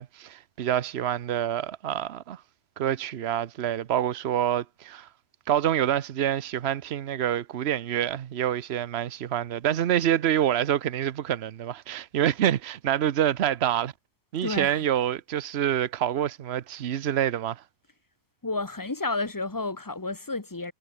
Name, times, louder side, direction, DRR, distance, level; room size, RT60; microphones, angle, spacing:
voice 1, 0.0-2.4 2.8-5.1 5.5-13.9 14.3-17.6, right 10 dB, 70° right, 1.0 m, -27 dB
voice 2, 14.4-14.8 18.4-20.7, left 3 dB, 20° left, 1.2 m, -31 dB
omnidirectional pair, 1.1 m